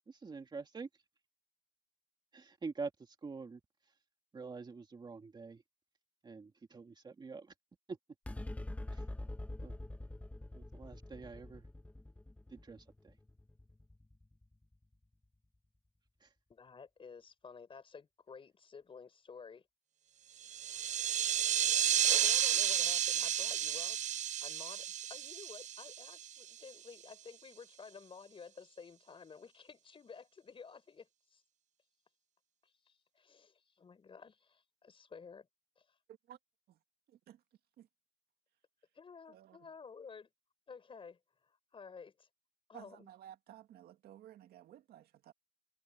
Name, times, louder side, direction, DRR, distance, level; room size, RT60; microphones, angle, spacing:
voice 1, 0.1-0.9 2.3-3.9 4.3-5.6 6.2-7.5 7.9-8.0 8.9-9.1 9.6-9.8 10.5-11.7 12.5-13.2 16.2-16.3, right 4 dB, 25° right, 2.1 m, -46 dB
sound 1, 8.2-14.9, left 1 dB, 10° left, 1.4 m, -45 dB
voice 2, 16.5-19.6 20.6-20.8 22.0-24.0 24.4-31.4 32.6-35.5 35.8-35.9 38.9-40.3 40.7-41.2 41.7-42.3 42.7-43.1, left 5 dB, 30° left, 5.3 m, -53 dB
sound 2, 20.4-26.5, right 10 dB, 45° right, 0.6 m, -32 dB
voice 3, 37.1-37.4 37.8-37.9 39.3-39.7 42.7-45.3, right 11 dB, 70° right, 2.2 m, -55 dB
cardioid pair, 110°, 17 cm